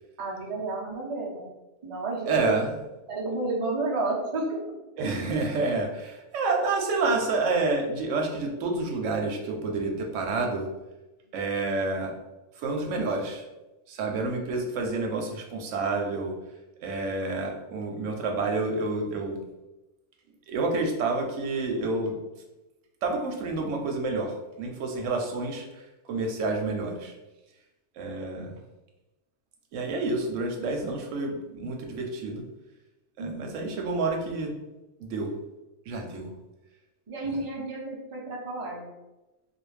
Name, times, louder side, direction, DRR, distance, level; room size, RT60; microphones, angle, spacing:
voice 1, 0.2-1.5 1.8-2.6 3.1-4.6 33.2-33.5 37.1-38.9, right 2 dB, 40° right, -3 dB, 0.5 m, -31 dB
voice 2, 2.3-2.7 5.0-10.7 11.3-12.1 12.6-13.4 13.9-16.3 16.8-19.4 20.5-22.2 23.0-25.6 26.1-27.1 28.0-28.5 29.7-32.4 33.2-34.5 35.0-35.3 35.8-36.3, right 3 dB, 85° right, 2 dB, 0.9 m, -29 dB
2.4 x 2.2 x 3.1 m, 1.0 s
omnidirectional pair, 1.2 m